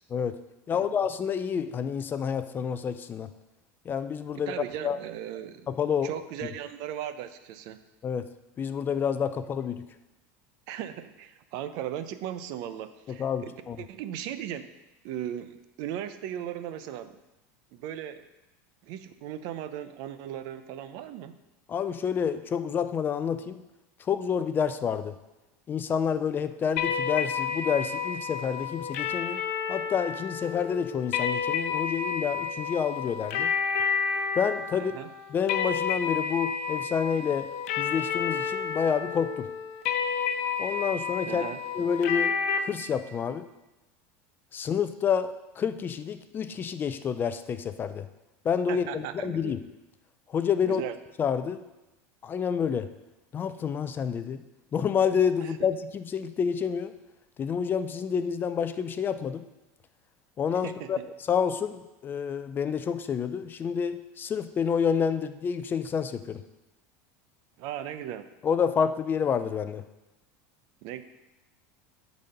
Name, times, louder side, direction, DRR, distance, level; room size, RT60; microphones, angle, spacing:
voice 1, 0.7-3.3 3.9-4.5 4.8-5.0 5.7-6.1 8.0-8.3 8.6-9.8 13.1-13.8 21.7-23.6 24.1-25.1 25.7-29.4 29.7-33.5 34.4-35.0 35.3-37.5 37.8-39.5 40.6-41.4 41.7-43.5 44.5-48.1 48.4-49.6 50.3-50.8 51.2-51.6 52.2-52.9 53.3-54.4 54.7-56.9 57.4-59.4 60.4-61.0 61.3-66.4 68.4-69.8, left 7 dB, 25° left, 11 dB, 0.4 m, -28 dB
voice 2, 4.5-5.7 6.0-7.8 10.7-13.5 13.8-14.7 15.0-17.2 17.7-18.3 18.8-21.3 34.7-35.1 41.3-41.6 48.7-49.5 50.6-51.0 55.4-55.5 60.6-61.0 67.6-68.3 70.8-71.0, right 10 dB, 60° right, 11 dB, 0.6 m, -37 dB
sound 1, 26.8-42.6, left 6 dB, 80° left, 0.9 m, -30 dB
8.1 x 4.1 x 6.6 m, 1.0 s
supercardioid pair, 130°, 8 cm